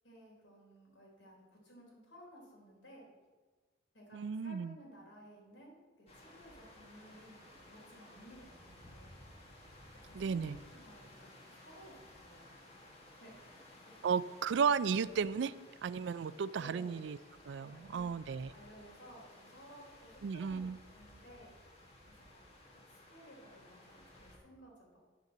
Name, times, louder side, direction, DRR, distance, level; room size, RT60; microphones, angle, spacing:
voice 1, 0.0-3.1 3.9-9.5 10.0-12.6 13.2-13.7 14.0-14.2 16.6-17.0 17.7-18.1 18.5-21.5 22.1-22.4 22.7-25.0, equal, 85° left, -2 dB, 3.8 m, -57 dB
voice 2, 4.1-4.8 10.1-10.6 14.0-15.5 15.8-17.2 17.5-18.5 20.2-20.8, right 6 dB, 70° right, 17 dB, 0.4 m, -34 dB
sound 1, 6.1-24.4, left 1 dB, 35° left, 1.7 m, -57 dB
8.6 x 6.6 x 7.3 m, 1.4 s
head